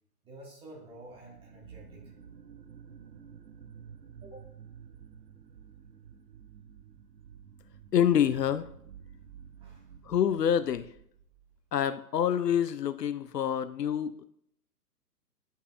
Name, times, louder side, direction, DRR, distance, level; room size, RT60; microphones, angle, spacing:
voice 1, 0.2-2.0 4.2-4.5 9.6-9.9, right 1 dB, 10° right, -3 dB, 1.7 m, -49 dB
sound 1, 0.9-11.6, right 7 dB, 85° right, 0.8 m, -51 dB
voice 2, 7.9-8.7 10.0-10.9 11.7-14.2, left 9 dB, 80° left, 13 dB, 0.6 m, -27 dB
10.5 x 5.5 x 2.4 m, 0.70 s
figure-of-eight pair, 125°, 48 cm